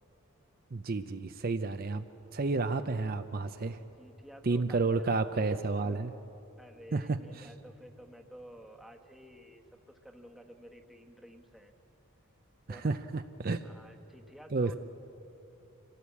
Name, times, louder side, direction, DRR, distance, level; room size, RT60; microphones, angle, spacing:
voice 1, 0.7-2.0 2.3-3.8 4.4-6.1 6.9-7.5 12.7-13.6 14.5-14.7, right 3 dB, 40° right, 9 dB, 0.5 m, -31 dB
voice 2, 4.0-5.2 6.6-11.7 12.7-12.9 13.2-13.3 13.6-14.8, equal, ahead, 2 dB, 1.2 m, -52 dB
26.0 x 17.0 x 8.4 m, 3.0 s
head